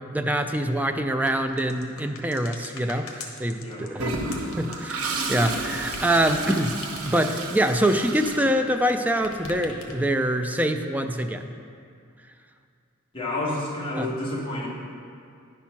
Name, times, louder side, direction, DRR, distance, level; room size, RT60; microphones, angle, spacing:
voice 1, 0.1-4.1 4.6-6.7 7.0-11.5 14.0-14.1, right 1 dB, 10° right, 6 dB, 0.3 m, -25 dB
sound 1, 1.2-8.9 9.2-10.2, left 4 dB, 70° left, 1.0 m, -42 dB
voice 2, 3.6-4.0 13.1-14.7, left 1 dB, 25° left, -6 dB, 1.7 m, -30 dB
Toilet flush, 4.0-9.0, right 3 dB, 85° right, 0.8 m, -32 dB
10.0 x 4.4 x 5.8 m, 2.4 s
head